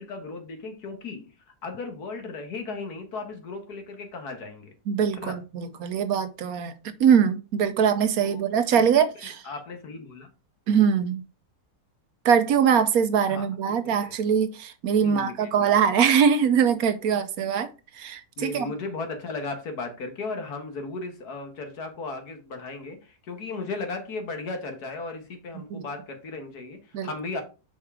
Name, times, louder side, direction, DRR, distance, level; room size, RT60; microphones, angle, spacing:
voice 1, 0.0-1.4 1.6-4.7 5.2-5.4 8.2-8.4 8.7-8.8 9.2-10.3 13.3-13.5 14.0-14.2 15.0-15.8 18.4-27.4, left 3 dB, 75° left, 2.0 m, -36 dB
voice 2, 4.9-6.7 7.0-9.3 10.7-11.2 12.2-17.7 18.0-18.7 25.7-25.8 26.9-27.1, right 7 dB, 70° right, 1.1 m, -22 dB
5.8 x 4.6 x 4.8 m
omnidirectional pair, 1.7 m